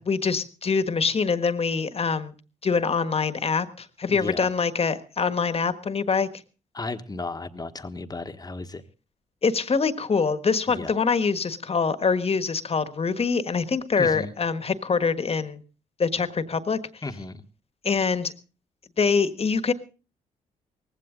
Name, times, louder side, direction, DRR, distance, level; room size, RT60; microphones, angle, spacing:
voice 1, 0.0-2.3 2.6-6.3 9.4-15.6 16.0-16.8 17.8-18.3 19.0-19.7, left 5 dB, 40° left, 12 dB, 1.5 m, -24 dB
voice 2, 4.1-4.5 6.7-8.8 10.7-10.9 14.0-14.3 17.0-17.4, left 3 dB, 25° left, 10 dB, 1.3 m, -34 dB
18.5 x 15.5 x 3.8 m, 0.34 s
supercardioid pair, 65°, 15 cm